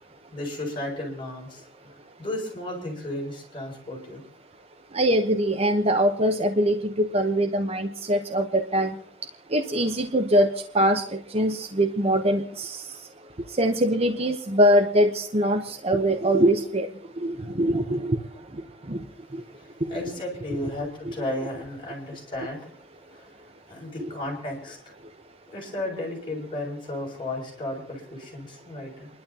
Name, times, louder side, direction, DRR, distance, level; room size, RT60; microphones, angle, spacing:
voice 1, 0.3-1.6 2.2-4.2 19.9-22.7 23.1-23.3 23.7-24.9 25.5-29.1, left 1 dB, 25° left, -3 dB, 6.9 m, -34 dB
voice 2, 4.9-9.0 9.5-12.9 13.6-16.9 17.2-18.2 18.9-19.0 19.3-19.4 19.8-20.0 21.0-21.1 24.0-24.1, right 1 dB, 35° right, 5 dB, 1.0 m, -23 dB
29.5 x 12.0 x 2.9 m, 0.64 s
head